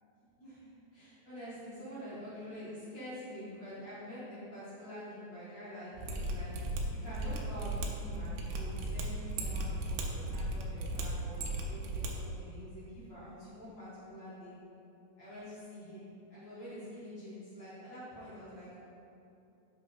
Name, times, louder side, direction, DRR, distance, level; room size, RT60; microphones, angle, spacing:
voice 1, 0.4-14.6 15.2-18.9, equal, 60° left, -11 dB, 1.1 m, -47 dB
Mechanisms, 6.0-12.1 12.3-12.4, right 2 dB, 85° right, 2.9 m, -36 dB
7.9 x 3.2 x 5.5 m, 2.8 s
omnidirectional pair, 4.8 m